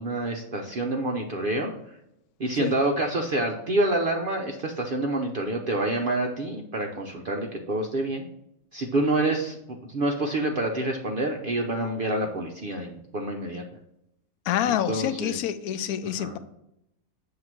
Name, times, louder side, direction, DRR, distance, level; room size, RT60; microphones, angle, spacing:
voice 1, 0.0-1.7 2.4-8.3 8.7-9.6 9.9-13.6 14.7-15.4 16.2-16.4, right 2 dB, 70° right, 2 dB, 0.5 m, -27 dB
voice 2, 14.5-16.4, left 10 dB, 70° left, 11 dB, 1.0 m, -27 dB
7.8 x 2.8 x 5.9 m, 0.81 s
omnidirectional pair, 1.8 m